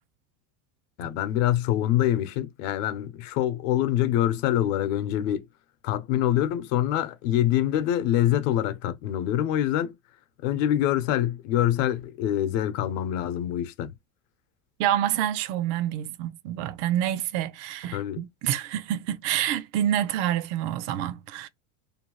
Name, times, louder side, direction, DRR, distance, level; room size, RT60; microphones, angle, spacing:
voice 1, 1.0-5.5 5.8-9.9 10.4-13.9 17.9-18.2, left 12 dB, 65° left, 0.8 m, -25 dB
voice 2, 14.8-21.5, right 11 dB, 50° right, 0.5 m, -27 dB
2.7 x 2.2 x 3.0 m
supercardioid pair, 145°, 40 cm